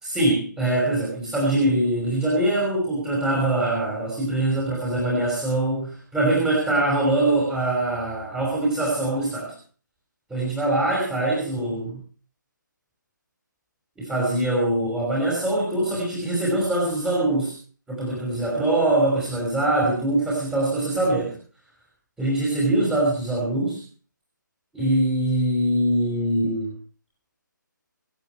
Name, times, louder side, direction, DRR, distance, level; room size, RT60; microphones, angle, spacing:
voice 1, 0.0-9.5 10.3-12.0 14.0-17.5 17.9-21.4 22.2-23.8 24.7-26.7, right 1 dB, 5° right, -5 dB, 5.7 m, -23 dB
26.5 x 9.2 x 4.6 m, 0.41 s
figure-of-eight pair, 150°, 11 cm